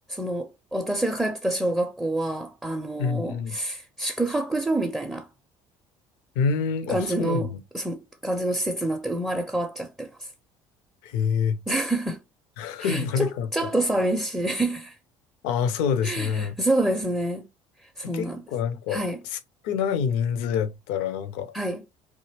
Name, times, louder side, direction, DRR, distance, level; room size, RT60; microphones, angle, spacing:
voice 1, 0.1-5.3 6.9-10.3 11.7-12.2 12.8-15.0 16.0-17.5 18.0-18.4 18.9-19.2 21.5-21.8, right 1 dB, 5° right, 0.5 m, -27 dB
voice 2, 3.0-3.6 6.4-7.6 11.0-11.6 12.6-13.5 15.4-16.5 18.1-19.4 19.6-21.5, left 6 dB, 60° left, 0.7 m, -27 dB
3.7 x 2.8 x 2.9 m
figure-of-eight pair, 60°, 17 cm